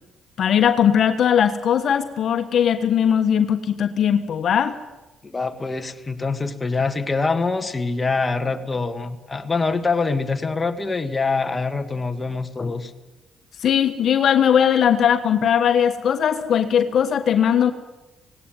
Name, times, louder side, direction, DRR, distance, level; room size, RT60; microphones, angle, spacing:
voice 1, 0.4-4.8 13.6-17.7, left 8 dB, 65° left, 8 dB, 1.4 m, -19 dB
voice 2, 5.2-12.9, left 4 dB, 25° left, 6 dB, 1.8 m, -24 dB
18.0 x 18.0 x 9.3 m, 1.0 s
cardioid pair, 90°, 0 cm